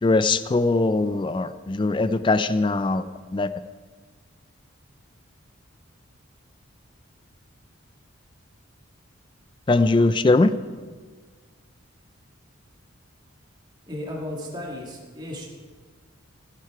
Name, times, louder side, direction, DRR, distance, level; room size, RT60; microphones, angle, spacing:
voice 1, 0.0-3.1 3.3-3.5 9.7-10.6, left 3 dB, 25° left, 13 dB, 0.3 m, -21 dB
voice 2, 13.9-15.5, left 1 dB, 20° right, -2 dB, 1.9 m, -34 dB
16.0 x 8.2 x 4.7 m, 1.5 s
head